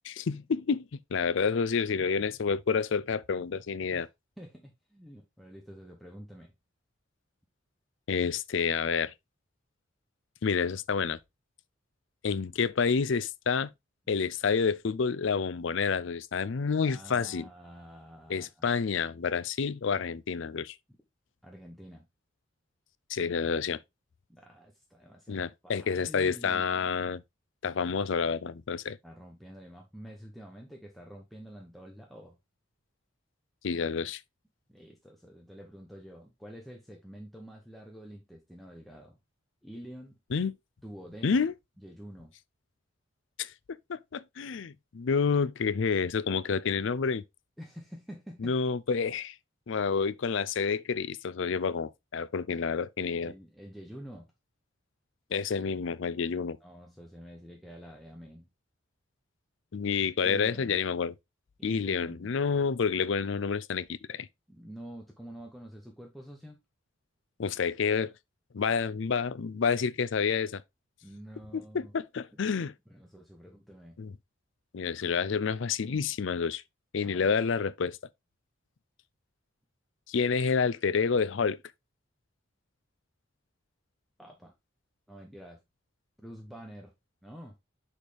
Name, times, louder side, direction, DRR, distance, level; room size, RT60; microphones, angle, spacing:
voice 1, 0.0-4.1 8.1-9.1 10.4-11.2 12.2-13.7 14.1-17.5 18.3-20.7 23.1-23.8 25.3-27.2 27.6-29.0 33.6-34.2 40.3-40.5 41.2-41.5 43.4-43.5 43.9-47.2 48.4-49.4 49.7-53.3 55.3-56.6 59.7-61.1 61.6-64.3 67.4-68.1 68.5-70.6 71.5-72.7 74.0-74.2 74.7-76.6 76.9-78.0 80.1-81.6, left 5 dB, 70° left, 0.5 m, -29 dB
voice 2, 4.4-6.5 16.9-18.7 21.4-22.1 24.3-26.6 29.0-32.4 34.7-39.2 39.6-40.2 40.8-41.5 41.8-42.3 47.6-48.6 53.2-54.3 56.6-58.5 59.9-60.0 60.2-60.8 61.6-62.3 64.5-66.6 71.0-71.9 72.9-74.0 77.0-77.3 84.2-84.5 85.1-85.6 86.2-86.9 87.2-87.6, equal, ahead, 1.0 m, -47 dB
6.5 x 5.0 x 3.4 m
head